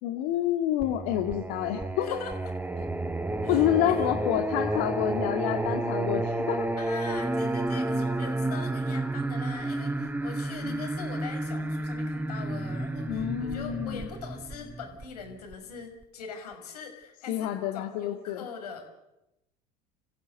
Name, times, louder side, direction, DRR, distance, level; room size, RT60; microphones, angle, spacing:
voice 1, 0.0-2.1 3.5-6.7 10.6-10.8 13.1-14.1 17.3-18.4, left 12 dB, 65° left, 4 dB, 2.1 m, -28 dB
Singing, 0.8-15.5, right 2 dB, 10° right, 1.5 m, -31 dB
voice 2, 2.0-2.3 3.4-4.1 6.8-18.9, left 6 dB, 85° left, 4 dB, 5.8 m, -42 dB
29.5 x 16.0 x 8.2 m, 0.89 s
hypercardioid pair, 80°, 19 cm